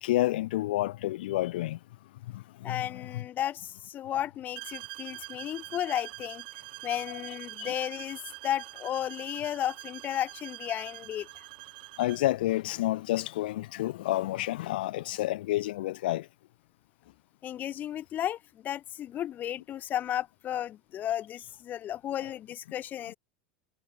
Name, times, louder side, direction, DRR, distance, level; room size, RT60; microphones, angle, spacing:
voice 1, 0.0-1.8 2.2-3.2 7.1-7.2 7.6-7.7 12.0-16.3, left 16 dB, 85° left, 1.2 m, -30 dB
voice 2, 2.6-6.4 6.8-11.4 17.4-23.2, left 11 dB, 35° left, 0.8 m, -34 dB
sound 1, 4.6-12.3, right 20 dB, 75° right, 1.0 m, -44 dB
supercardioid pair, 120°, 5 cm